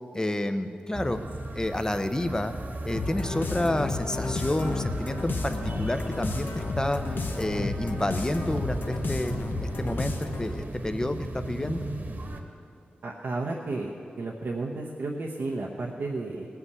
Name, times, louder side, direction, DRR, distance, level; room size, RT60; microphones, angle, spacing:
voice 1, 0.1-1.2 1.5-2.5 2.8-7.0 7.3-11.9, left 1 dB, 20° left, 9 dB, 0.7 m, -29 dB
sound 1, 0.9-12.4, right 1 dB, 60° right, 1.4 m, -36 dB
sound 2, 3.0-10.6, left 3 dB, 75° left, 0.9 m, -33 dB
voice 2, 13.0-16.5, right 3 dB, 85° right, -3 dB, 0.9 m, -32 dB
17.5 x 5.9 x 8.1 m, 2.5 s
wide cardioid pair, 70°, 3 cm